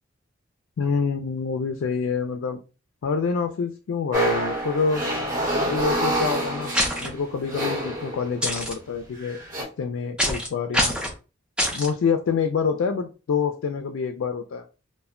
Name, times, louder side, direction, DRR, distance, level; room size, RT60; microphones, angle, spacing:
voice 1, 0.8-2.6 3.0-5.0 5.6-6.7 7.0-9.4 9.8-11.0 11.7-14.6, left 5 dB, 75° left, 6 dB, 0.3 m, -26 dB
sound 1, 4.1-8.6 9.3-9.6, right 1 dB, 40° right, 1.0 m, -27 dB
sound 2, 6.7-7.1 8.4-8.7 10.2-10.5 10.7-11.1 11.6-11.9, equal, 5° right, 0.5 m, -24 dB
2.1 x 2.1 x 3.5 m, 0.32 s
head